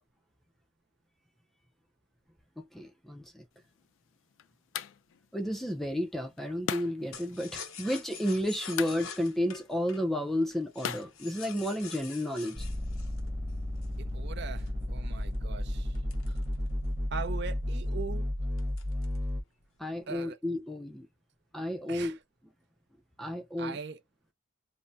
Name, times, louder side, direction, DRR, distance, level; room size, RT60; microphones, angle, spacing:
voice 1, 2.6-3.4 5.3-12.7 19.8-21.1 21.5-22.2 23.2-23.8, left 1 dB, ahead, 0.4 m, -32 dB
sound 1, 3.5-12.0, left 9 dB, 70° left, 0.3 m, -43 dB
sound 2, 7.1-14.0 14.6-17.0 17.4-17.5 17.8-18.1 18.6-19.3 19.6-20.2, left 6 dB, 90° left, 0.8 m, -46 dB
sound 3, 12.6-19.4, left 1 dB, 15° right, 0.9 m, -33 dB
voice 2, 14.0-15.9 16.3-16.4 17.1-18.3 20.1-20.4 21.9-22.2 23.6-24.0, right 5 dB, 55° right, 0.5 m, -40 dB
2.6 x 2.0 x 3.3 m
head